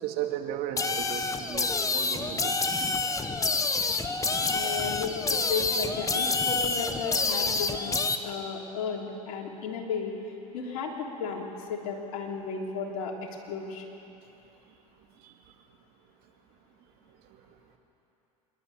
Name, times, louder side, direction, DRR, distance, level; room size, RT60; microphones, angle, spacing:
voice 1, 0.0-2.8 6.6-6.7 15.2-15.3 17.3-17.4, right 10 dB, 55° right, 4 dB, 2.3 m, -36 dB
sound 1, 0.8-8.2, left 3 dB, 15° left, 1.3 m, -28 dB
voice 2, 4.5-7.9 8.2-10.1 10.5-13.9, left 5 dB, 70° left, 0 dB, 3.4 m, -34 dB
27.0 x 12.0 x 9.3 m, 2.9 s
hypercardioid pair, 80°, 19 cm